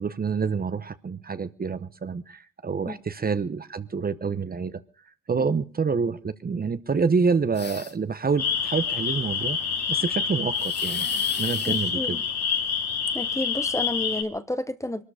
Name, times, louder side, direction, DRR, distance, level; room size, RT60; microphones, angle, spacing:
voice 1, 0.0-4.8 5.3-9.6 9.9-11.1 11.4-12.2, right 5 dB, 30° right, 0.9 m, -27 dB
sound 1, 7.5-8.1 10.5-11.9, left 6 dB, 35° left, 1.2 m, -39 dB
sound 2, 8.4-14.2, left 6 dB, 60° left, 2.4 m, -27 dB
voice 2, 11.7-12.2 13.1-15.0, left 1 dB, 10° left, 1.0 m, -31 dB
22.0 x 13.0 x 5.0 m
cardioid pair, 90°, 30 cm